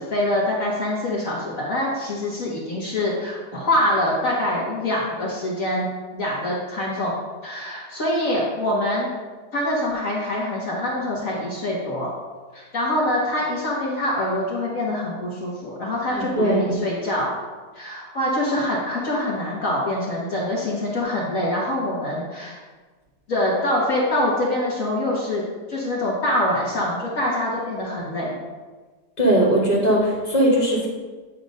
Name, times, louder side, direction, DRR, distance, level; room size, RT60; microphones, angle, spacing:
voice 1, 0.0-7.1 7.4-9.1 9.5-12.1 12.5-17.3 17.7-22.6 23.3-25.4 25.7-28.3, left 1 dB, 55° left, -4 dB, 1.4 m, -24 dB
voice 2, 16.1-16.7 29.2-30.9, right 1 dB, 25° left, -4 dB, 1.5 m, -19 dB
8.4 x 2.9 x 5.1 m, 1.4 s
omnidirectional pair, 1.8 m